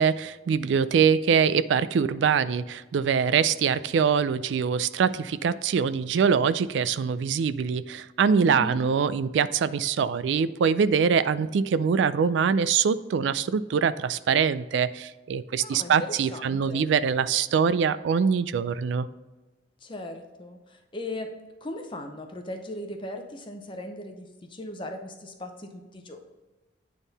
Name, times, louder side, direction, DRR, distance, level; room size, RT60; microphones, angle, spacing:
voice 1, 0.0-19.1, right 6 dB, 75° right, 15 dB, 0.3 m, -24 dB
voice 2, 8.5-8.8 15.6-16.8 19.8-21.3 21.6-26.2, left 1 dB, 25° left, 4 dB, 0.7 m, -38 dB
9.0 x 3.6 x 4.0 m, 1.2 s
head